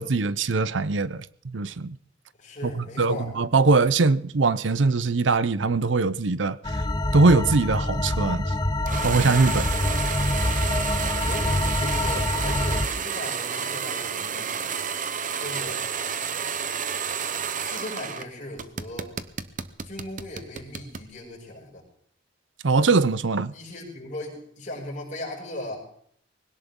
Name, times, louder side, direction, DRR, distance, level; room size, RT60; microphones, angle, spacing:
voice 1, 0.0-2.0 2.6-6.6 7.1-8.5 9.0-9.7 22.6-23.5, right 3 dB, 85° right, 0.7 m, -22 dB
voice 2, 2.4-3.3 9.7-10.1 11.2-14.7 15.4-15.8 17.6-19.1 19.8-21.8 23.5-25.8, left 1 dB, 45° left, 6.7 m, -38 dB
sound 1, 6.6-12.9, left 1 dB, 20° left, 0.9 m, -26 dB
sound 2, 8.9-18.3 18.6-21.1, right 7 dB, 45° right, 0.9 m, -30 dB
21.0 x 18.0 x 3.8 m
head